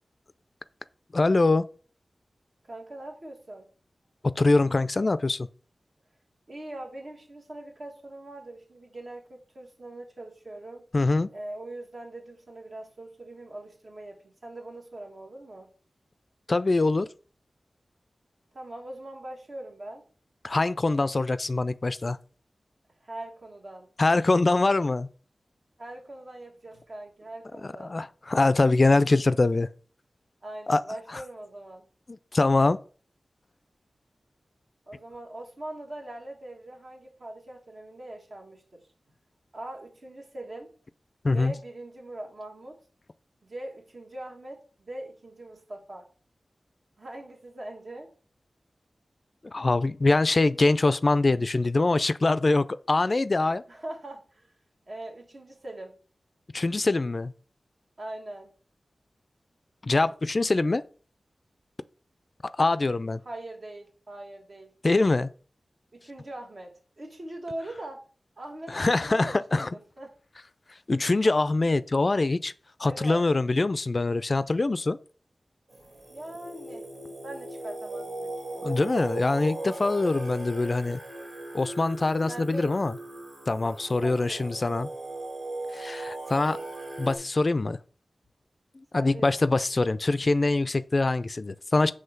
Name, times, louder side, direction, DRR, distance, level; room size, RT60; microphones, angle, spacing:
voice 1, 1.1-1.6 4.2-5.5 10.9-11.3 16.5-17.1 20.4-22.2 24.0-25.1 27.6-29.7 30.7-30.8 31.1-31.2 32.1-32.8 41.2-41.5 49.4-53.6 56.5-57.3 59.8-60.8 62.6-63.2 64.8-65.3 68.7-69.7 70.9-72.5 72.8-75.0 78.6-81.0 81.5-83.0 83.5-84.9 85.7-86.6 87.0-87.8 88.9-91.9, left 2 dB, 50° left, 0.3 m, -24 dB
voice 2, 2.6-3.7 6.5-10.8 11.3-15.7 18.5-20.0 23.0-23.9 25.8-28.0 30.4-31.8 34.9-38.8 39.5-40.7 41.3-42.8 43.4-46.1 47.0-48.1 53.7-54.5 54.9-55.9 58.0-58.5 63.2-64.7 65.9-68.0 68.4-70.1 72.8-73.2 75.7-75.8 76.1-76.9 77.2-78.8 82.2-82.8 84.0-84.5 88.9-89.3, right 1 dB, 60° right, 1.4 m, -41 dB
Singing, 75.7-87.2, right 2 dB, 80° right, 2.6 m, -38 dB
5.6 x 3.1 x 5.6 m
cardioid pair, 55°, 0 cm